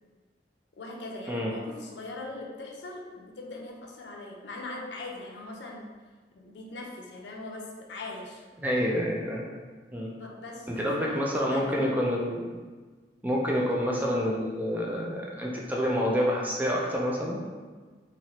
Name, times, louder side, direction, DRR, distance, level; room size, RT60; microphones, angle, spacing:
voice 1, 0.8-5.8 6.4-8.4 10.0-12.0, left 2 dB, 75° left, 0 dB, 0.5 m, -41 dB
voice 2, 8.6-9.4 9.9-10.1 10.7-12.5 13.2-17.4, equal, 10° right, -3 dB, 0.4 m, -28 dB
2.9 x 2.9 x 2.7 m, 1.4 s
head